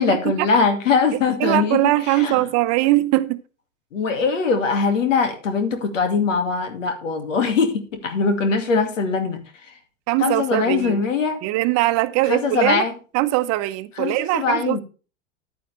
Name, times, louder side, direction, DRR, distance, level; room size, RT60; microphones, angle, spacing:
voice 1, 0.0-1.8 2.1-2.4 3.9-9.4 10.2-11.4 12.3-12.9 14.0-14.8, left 5 dB, 80° left, 2.2 m, -21 dB
voice 2, 1.4-3.4 10.1-11.0 11.4-12.8 13.1-14.8, right 17 dB, 45° right, 0.9 m, -21 dB
10.5 x 9.3 x 3.4 m
hypercardioid pair, 95°, 38 cm